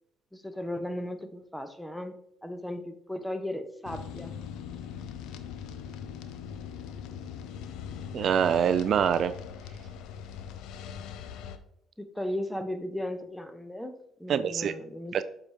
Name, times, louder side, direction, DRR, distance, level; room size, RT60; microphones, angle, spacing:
voice 1, 0.3-2.2 2.4-4.3 12.0-15.2, left 1 dB, 5° left, 8 dB, 0.9 m, -36 dB
sound 1, 3.8-11.6, left 7 dB, 75° left, 0.5 m, -41 dB
voice 2, 8.1-9.3 14.3-14.7 15.1-15.2, right 8 dB, 55° right, 12 dB, 0.3 m, -24 dB
7.7 x 4.9 x 2.8 m, 0.74 s
hypercardioid pair, 65°, 0 cm